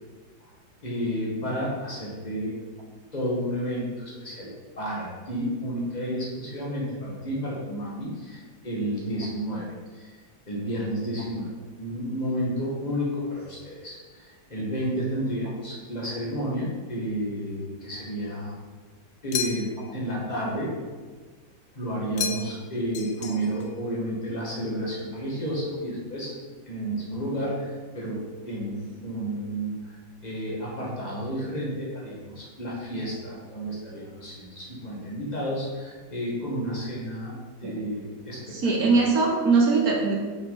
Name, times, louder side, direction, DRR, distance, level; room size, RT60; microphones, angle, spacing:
voice 1, 0.8-2.6 3.1-10.2 10.5-11.5 11.8-18.5 19.2-20.7 21.7-26.3 26.7-30.0 30.2-39.0, equal, 20° left, -5 dB, 1.7 m, -31 dB
sound 1, 19.3-19.9 22.2-22.7 22.9-23.7, left 7 dB, 75° left, 0.8 m, -32 dB
voice 2, 38.5-40.2, right 4 dB, 55° right, -1 dB, 1.4 m, -21 dB
6.2 x 6.1 x 4.0 m, 1.4 s
omnidirectional pair, 2.1 m